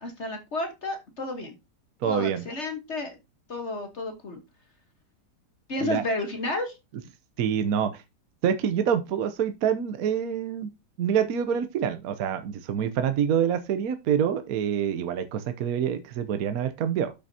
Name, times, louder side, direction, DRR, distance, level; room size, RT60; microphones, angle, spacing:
voice 1, 0.0-1.5 2.0-3.1 3.5-4.4 5.7-6.7, left 2 dB, 45° left, 1.5 m, -31 dB
voice 2, 2.0-2.4 5.8-6.0 7.4-8.0 8.4-10.7 11.0-17.1, right 8 dB, 65° right, 1.2 m, -26 dB
11.5 x 6.0 x 2.7 m
omnidirectional pair, 1.8 m